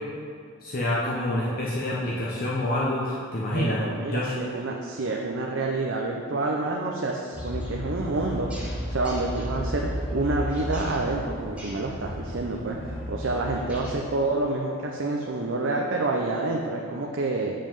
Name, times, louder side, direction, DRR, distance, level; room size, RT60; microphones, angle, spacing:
voice 1, 0.6-4.3, left 1 dB, 45° left, -6 dB, 0.8 m, -27 dB
voice 2, 3.5-8.5 8.9-17.5, right 2 dB, 65° right, 0 dB, 0.6 m, -28 dB
sound 1, 7.3-13.9, equal, 5° right, 1.1 m, -33 dB
7.6 x 5.2 x 5.3 m, 2.3 s
head